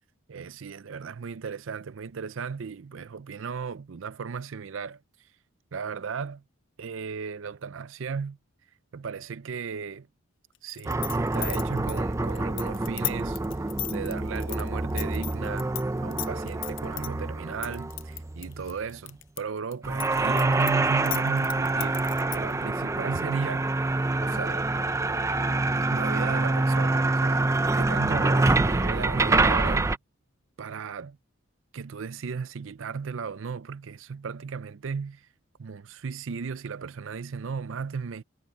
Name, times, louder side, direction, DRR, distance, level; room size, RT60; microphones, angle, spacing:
voice 1, 0.3-5.0 5.7-6.4 6.8-8.4 8.9-10.1 10.6-13.4 13.9-15.7 16.0-22.0 22.3-23.7 24.2-24.7 25.8-30.0 30.6-31.2 31.7-35.3 35.6-38.2, right 5 dB, 65° right, 0.5 m, -35 dB
sound 1, 10.7-15.8 16.1-17.1 17.6-19.4 19.7-22.5, left 17 dB, 60° left, 0.7 m, -35 dB
sound 2, 10.9-18.8 19.8-30.0, right 2 dB, 15° right, 0.4 m, -26 dB
head